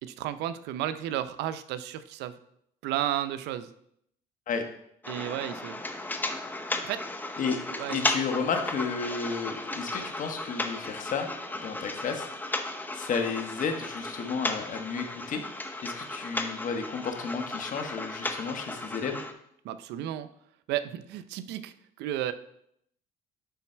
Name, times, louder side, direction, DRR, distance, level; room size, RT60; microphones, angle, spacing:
voice 1, 0.0-2.4 2.8-3.7 5.1-5.8 6.8-7.0 7.7-8.0 19.6-20.3 20.7-22.3, right 12 dB, 85° right, 12 dB, 0.5 m, -33 dB
sound 1, 5.0-19.3, left 2 dB, 10° left, 0.8 m, -35 dB
voice 2, 7.9-12.5 12.9-15.4 15.8-19.2, left 5 dB, 50° left, 5 dB, 1.3 m, -32 dB
10.5 x 4.0 x 4.4 m, 0.72 s
cardioid pair, 110°, 17 cm